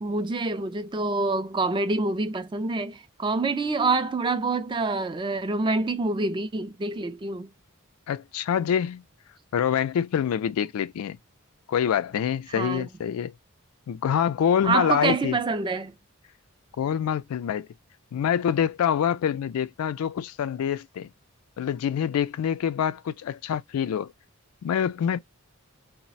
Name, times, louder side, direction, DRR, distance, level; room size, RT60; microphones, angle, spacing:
voice 1, 0.0-7.5 12.6-12.9 14.6-15.9, right 3 dB, 20° right, 0.3 m, -26 dB
voice 2, 8.1-9.0 9.5-11.2 11.7-13.3 13.9-15.4 16.8-17.7 18.1-21.1 21.6-24.1 24.6-25.2, left 8 dB, 85° left, 0.3 m, -26 dB
2.4 x 2.1 x 3.9 m
head